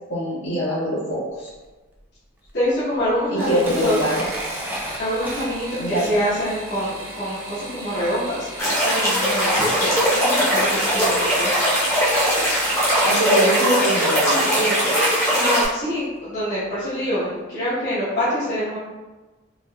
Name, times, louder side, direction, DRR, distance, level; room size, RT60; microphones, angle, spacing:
voice 1, 0.1-1.5 3.3-4.3 5.8-6.1 13.0-15.0, right 1 dB, 75° left, -9 dB, 1.4 m, -23 dB
Camera, 1.5-1.6 2.4-2.5 3.0-6.5, equal, 10° right, 0.3 m, -34 dB
voice 2, 2.5-4.0 5.0-11.6 15.3-18.8, equal, 55° left, -12 dB, 1.1 m, -25 dB
sound 1, 3.3-13.2 14.4-14.9 15.3-15.8 16.0-16.1, right 1 dB, 75° right, 0.8 m, -36 dB
sound 2, 8.6-15.6, equal, 15° left, 0.8 m, -20 dB
3.7 x 2.5 x 2.2 m, 1.2 s
head